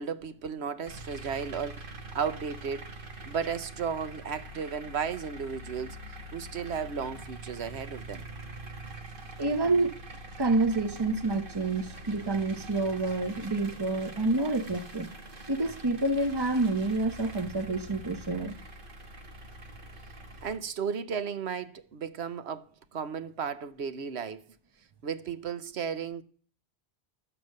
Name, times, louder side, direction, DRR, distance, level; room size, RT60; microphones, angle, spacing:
voice 1, 0.0-2.9 3.3-6.0 6.3-8.2 20.4-24.4 25.0-26.2, right 6 dB, 80° right, 1.1 m, -34 dB
sound 1, 0.8-20.6, right 1 dB, 55° right, 1.7 m, -44 dB
voice 2, 9.4-9.9 10.4-15.1 15.5-18.6, right 2 dB, 25° right, 0.9 m, -28 dB
12.0 x 8.8 x 6.5 m
omnidirectional pair, 1.1 m